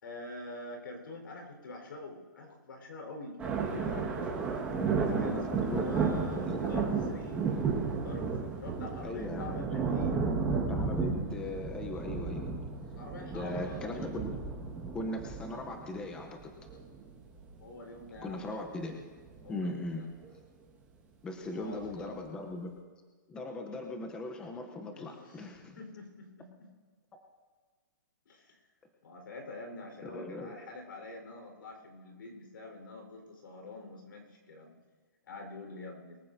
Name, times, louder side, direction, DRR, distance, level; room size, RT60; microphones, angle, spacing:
voice 1, 0.0-4.5 5.2-7.5 8.0-8.3 8.6-10.2 12.9-14.0 17.6-18.4 19.4-20.1 21.4-22.3 24.9-26.7 28.3-28.6 29.0-34.8 35.2-36.2, left 2 dB, 85° left, 3 dB, 4.3 m, -45 dB
sound 1, 3.4-17.6 18.1-18.3 19.3-19.5 20.2-20.3 21.8-21.9, right 5 dB, 10° right, 1.6 m, -33 dB
voice 2, 4.7-6.1 6.5-6.6 9.0-9.6 10.7-12.5 13.3-14.3 14.9-16.5 18.2-18.9 19.5-20.0 21.2-22.7 23.3-25.8 30.0-30.5, left 2 dB, 10° left, 3 dB, 0.7 m, -39 dB
23.0 x 14.5 x 2.7 m, 1.4 s
hypercardioid pair, 170°, 11 cm